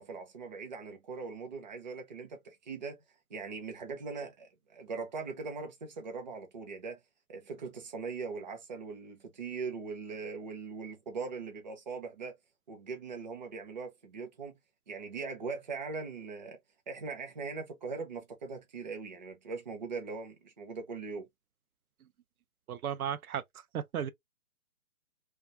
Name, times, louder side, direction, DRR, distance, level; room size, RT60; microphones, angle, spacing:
voice 1, 0.0-3.0 3.3-7.0 7.3-12.3 12.7-14.5 14.9-16.6 16.9-21.2, right 4 dB, 35° right, 0.6 m, -40 dB
voice 2, 22.7-23.4 23.7-24.1, right 9 dB, 85° right, 0.6 m, -34 dB
2.3 x 2.3 x 2.5 m
hypercardioid pair, 160°, 42 cm